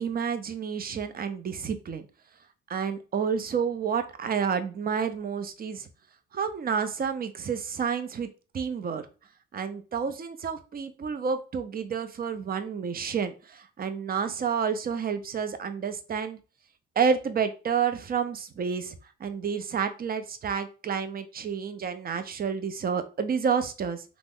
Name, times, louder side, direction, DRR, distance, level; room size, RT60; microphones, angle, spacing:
voice 1, 0.0-2.1 2.7-5.9 6.3-9.1 9.5-16.4 17.0-24.0, right 6 dB, 30° right, 10 dB, 0.4 m, -30 dB
3.0 x 2.0 x 3.5 m, 0.35 s
cardioid pair, 90°, 30 cm